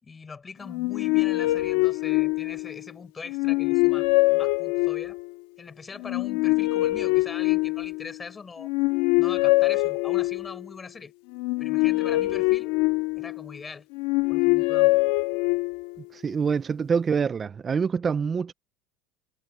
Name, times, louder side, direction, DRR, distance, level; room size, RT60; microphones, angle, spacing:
voice 1, 0.0-5.2 5.6-8.7 9.2-11.1 11.6-12.8 13.2-13.9 14.3-15.0, left 5 dB, 15° left, 5.9 m, -41 dB
sound 1, 0.7-2.8 3.3-5.3 6.0-8.1 8.6-10.6 11.3-13.5 13.9-16.0, left 21 dB, 75° left, 1.4 m, -24 dB
voice 2, 16.1-18.5, right 6 dB, 20° right, 0.4 m, -25 dB
cardioid pair, 160°, 0 cm